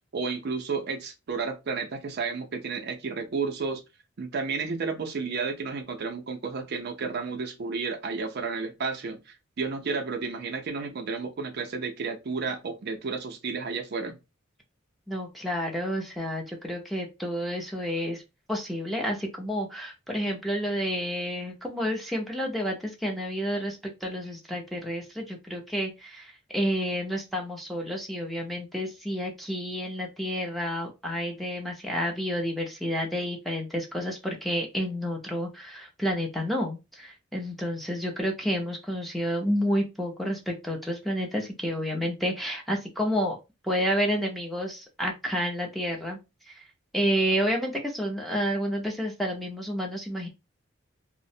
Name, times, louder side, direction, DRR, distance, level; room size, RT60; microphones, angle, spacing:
voice 1, 0.1-3.8 4.2-14.2, right 4 dB, 55° right, 0.5 m, -32 dB
voice 2, 15.1-18.2 18.5-43.4 43.6-46.2 46.5-46.6 46.9-50.3, equal, ahead, 0.5 m, -30 dB
2.5 x 2.0 x 2.6 m
head